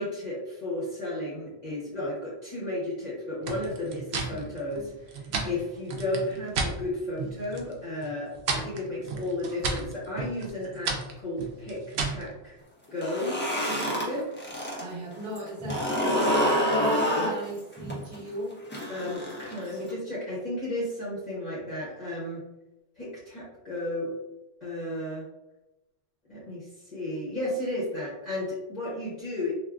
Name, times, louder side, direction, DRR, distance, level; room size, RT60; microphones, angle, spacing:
voice 1, 0.0-12.6 12.9-14.3 18.9-22.4 23.0-24.1 24.6-25.2 26.3-29.5, left 1 dB, 45° left, -8 dB, 1.0 m, -33 dB
sound 1, 3.4-6.8 7.1-7.7 8.0-12.3, right 4 dB, 80° right, 0.8 m, -33 dB
sound 2, 12.9-14.8 15.1-19.9, equal, 15° left, 0.5 m, -27 dB
voice 2, 14.8-18.5, equal, 60° right, -4 dB, 1.2 m, -38 dB
3.4 x 2.5 x 2.4 m, 0.96 s
omnidirectional pair, 1.0 m